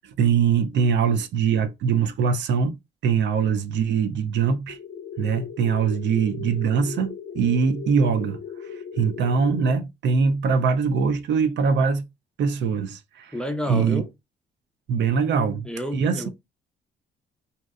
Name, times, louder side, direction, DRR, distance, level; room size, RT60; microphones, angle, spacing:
voice 1, 0.0-2.8 3.0-4.8 5.2-8.4 8.9-12.0 12.4-13.4 13.7-14.0 14.9-16.3, right 6 dB, 65° right, 0.4 m, -22 dB
sound 1, 4.7-9.7, left 6 dB, 60° left, 0.4 m, -37 dB
voice 2, 13.3-14.1 15.6-16.3, equal, 5° left, 0.4 m, -30 dB
2.6 x 2.1 x 2.3 m
cardioid pair, 90°, 20 cm